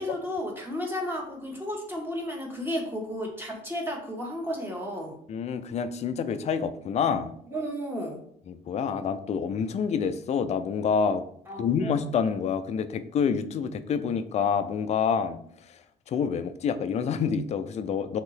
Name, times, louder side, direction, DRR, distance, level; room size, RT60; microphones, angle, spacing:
voice 1, 0.0-5.1 7.5-8.2 11.5-12.0, equal, 15° right, 0 dB, 1.3 m, -33 dB
voice 2, 5.3-7.3 8.5-11.2 11.6-15.4 16.1-18.2, left 6 dB, 40° left, 10 dB, 0.4 m, -27 dB
3.7 x 2.8 x 4.8 m, 0.65 s
cardioid pair, 110°, 17 cm